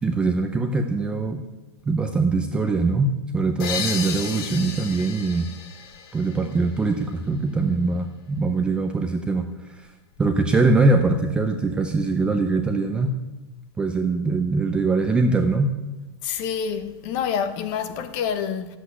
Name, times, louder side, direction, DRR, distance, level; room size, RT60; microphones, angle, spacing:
voice 1, 0.0-1.4 1.9-5.5 6.1-9.9 10.2-13.1 13.8-15.7, right 3 dB, 5° right, 0.5 m, -22 dB
sound 1, 3.6-7.2, left 6 dB, 50° left, 2.4 m, -33 dB
voice 2, 16.2-18.8, left 7 dB, 30° left, 0.9 m, -27 dB
12.5 x 8.1 x 9.5 m
supercardioid pair, 175°, 15 cm